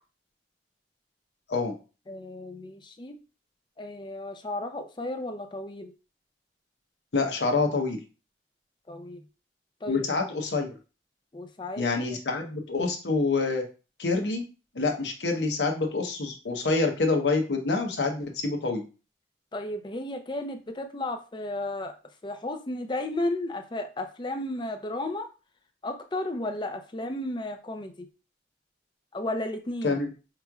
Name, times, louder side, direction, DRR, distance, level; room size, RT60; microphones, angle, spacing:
voice 1, 2.1-3.2 3.8-5.9 8.9-9.2 9.8-10.1 11.3-11.8 19.5-21.9 22.2-25.3 25.8-28.1 29.1-30.0, left 1 dB, 25° left, 6 dB, 0.5 m, -33 dB
voice 2, 7.1-8.0 9.9-10.8 11.8-13.6 14.0-14.4 14.7-18.9 29.8-30.1, left 3 dB, 85° left, 3 dB, 0.8 m, -27 dB
4.8 x 3.1 x 2.3 m, 0.33 s
head